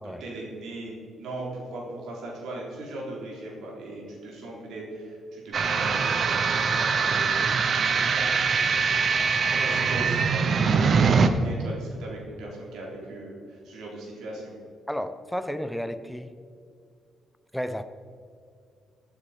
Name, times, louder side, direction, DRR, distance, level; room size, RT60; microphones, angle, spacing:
voice 1, 0.0-8.4 9.4-14.5, right 2 dB, 80° right, -3 dB, 4.0 m, -38 dB
sound 1, 5.5-11.3, right 5 dB, 50° right, 0.9 m, -23 dB
voice 2, 14.9-16.3 17.5-17.8, equal, ahead, 10 dB, 0.8 m, -32 dB
16.0 x 9.1 x 5.2 m, 2.3 s
cardioid pair, 90°, 0 cm